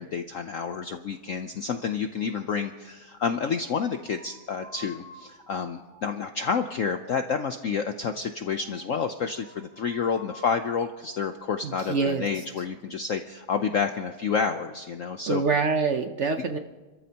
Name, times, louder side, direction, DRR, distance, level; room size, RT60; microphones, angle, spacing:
voice 1, 0.0-15.4, left 6 dB, 80° left, 7 dB, 0.7 m, -29 dB
sound 1, 3.5-12.4, equal, 10° right, 3.0 m, -52 dB
voice 2, 11.6-12.3 15.3-16.6, right 4 dB, 70° right, 6 dB, 0.6 m, -25 dB
29.5 x 14.0 x 2.9 m, 1.2 s
omnidirectional pair, 2.2 m